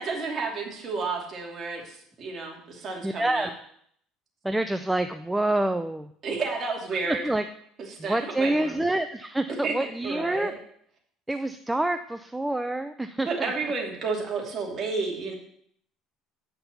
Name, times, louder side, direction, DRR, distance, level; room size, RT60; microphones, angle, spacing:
voice 1, 0.0-3.5 6.2-7.2 7.9-8.7 9.6-9.7 10.0-10.5 13.3-15.3, right 4 dB, 35° right, -1 dB, 2.7 m, -31 dB
voice 2, 3.0-3.5 4.4-6.1 7.0-7.4 8.0-10.5 11.3-13.5, right 1 dB, 5° right, 9 dB, 0.4 m, -27 dB
8.7 x 5.8 x 6.9 m, 0.66 s
cardioid pair, 135°, 0 cm